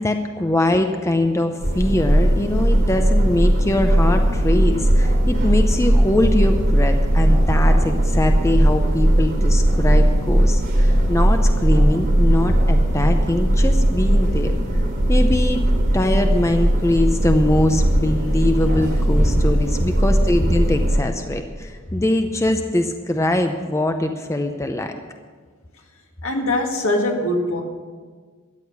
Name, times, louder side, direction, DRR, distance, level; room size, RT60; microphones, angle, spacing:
voice 1, 0.0-14.5 15.1-15.6 15.9-25.0, left 1 dB, 15° left, 6 dB, 0.6 m, -22 dB
sound 1, 1.6-21.0, right 1 dB, 45° right, 3.4 m, -18 dB
voice 2, 26.2-27.6, left 1 dB, 70° left, 2 dB, 2.0 m, -22 dB
13.5 x 9.9 x 6.8 m, 1.5 s
head